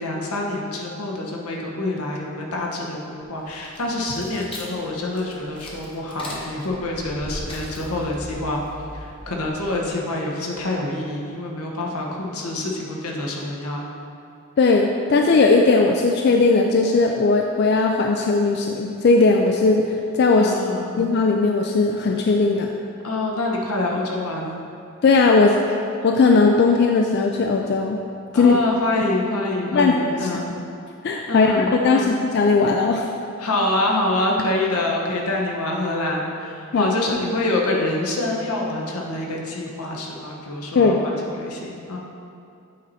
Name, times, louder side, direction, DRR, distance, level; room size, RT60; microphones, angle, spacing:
voice 1, 0.0-8.6 8.9-13.9 20.4-21.0 23.0-24.6 28.3-30.5 31.3-32.1 33.4-42.0, left 2 dB, 85° left, -1 dB, 1.1 m, -26 dB
sound 1, 3.4-10.0, left 1 dB, 25° left, 0.9 m, -39 dB
voice 2, 14.6-20.5 21.0-22.7 25.0-25.6 26.0-28.0 28.3-28.6 29.7-30.4 31.0-33.1 36.7-36.9 40.8-41.0, left 3 dB, 45° left, 2 dB, 0.3 m, -18 dB
8.3 x 4.4 x 4.2 m, 2.6 s
head